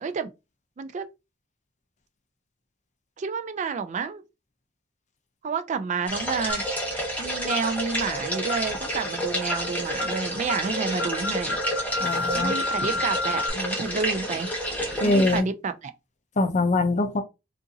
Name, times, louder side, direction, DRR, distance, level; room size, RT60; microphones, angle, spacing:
voice 1, 3.2-4.2 5.4-6.6 7.2-11.6 12.3-14.5 14.9-15.9, right 5 dB, 40° right, 0.3 m, -30 dB
sound 1, 6.1-15.4, equal, 10° left, 0.8 m, -30 dB
sound 2, 6.5-6.8 7.5-7.7 8.5-8.8 9.5-9.7 10.0-10.2 10.5-10.7 11.0-13.5, left 3 dB, 55° left, 1.1 m, -30 dB
voice 2, 12.0-12.5 15.0-15.5 16.4-17.2, left 2 dB, 40° left, 0.5 m, -23 dB
3.8 x 2.5 x 2.6 m
head